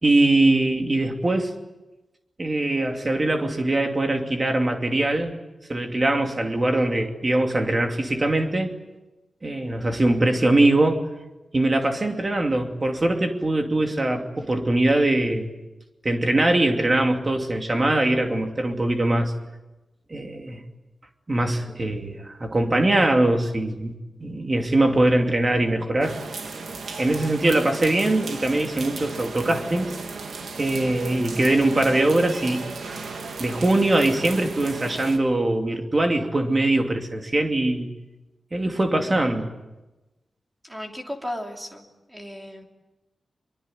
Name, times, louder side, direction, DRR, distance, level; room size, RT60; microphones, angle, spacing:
voice 1, 0.0-1.5 2.4-5.3 5.7-8.7 9.4-11.0 11.5-15.5 16.0-19.3 20.1-20.6 21.3-23.9 24.2-26.2 27.0-29.9 30.6-32.6 33.4-37.9 38.5-39.5, right 2 dB, 25° right, 4 dB, 2.7 m, -22 dB
sound 1, 26.0-35.2, right 4 dB, 85° right, 2.8 m, -35 dB
voice 2, 40.6-41.8 42.1-42.7, left 1 dB, 10° right, 2 dB, 3.2 m, -35 dB
24.5 x 23.5 x 9.3 m, 1.0 s
wide cardioid pair, 175°, 0 cm